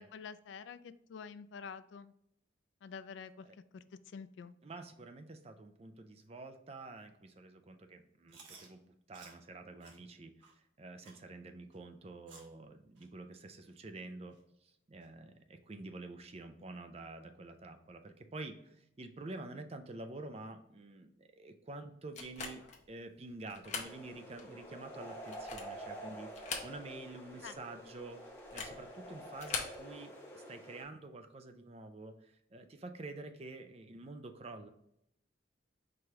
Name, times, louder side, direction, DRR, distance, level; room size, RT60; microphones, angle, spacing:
voice 1, 0.0-2.1 2.8-4.5 22.6-22.7 27.4-27.6, left 6 dB, 70° left, 14 dB, 0.3 m, -48 dB
voice 2, 4.6-8.8 9.1-14.4 14.6-28.2 28.5-34.7, right 2 dB, 30° right, 8 dB, 0.4 m, -48 dB
Chewing mastication, 8.3-8.7 9.1-9.4 9.8-10.0 10.4-10.5 11.0-11.2 11.7-11.8 12.3-12.5 13.0-13.1 13.7-13.8 14.3-14.4 15.0-15.1, right 4 dB, 80° right, 1.1 m, -56 dB
sound 1, 22.1-22.8 23.5-24.0 24.4-24.5 25.2-25.8 26.3-27.1 27.4-27.5 28.4-28.8 29.3-29.8, left 5 dB, 40° left, 0.7 m, -41 dB
sound 2, 23.8-30.8, right 1 dB, 10° left, 1.1 m, -48 dB
4.8 x 3.0 x 3.5 m, 0.76 s
head